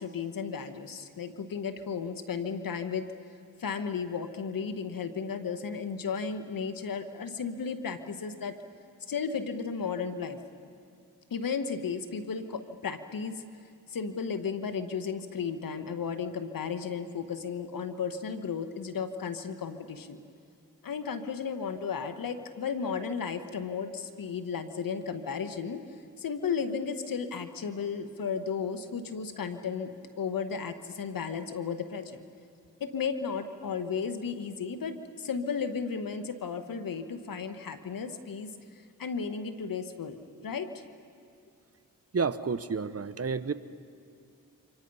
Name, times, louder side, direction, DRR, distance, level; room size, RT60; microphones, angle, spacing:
voice 1, 0.0-3.0 3.6-8.5 9.1-10.4 11.3-13.4 13.9-20.2 20.8-25.8 26.2-32.2 32.8-38.5 39.0-40.2 40.4-40.7, left 6 dB, 75° left, 9 dB, 1.5 m, -34 dB
voice 2, 42.1-43.5, right 5 dB, 45° right, 13 dB, 1.0 m, -30 dB
29.0 x 25.5 x 5.6 m, 2.4 s
cardioid pair, 50°, 34 cm